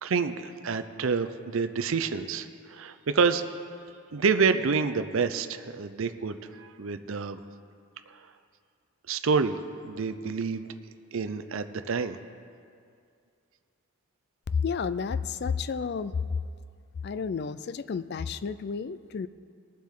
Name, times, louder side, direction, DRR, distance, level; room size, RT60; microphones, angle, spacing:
voice 1, 0.0-3.4 4.1-7.4 9.1-9.6 9.8-10.7 11.1-12.2, right 5 dB, 65° right, 10 dB, 0.5 m, -28 dB
voice 2, 14.6-16.1 17.0-19.3, left 5 dB, 50° left, 15 dB, 0.3 m, -31 dB
20.5 x 7.4 x 3.7 m, 2.3 s
head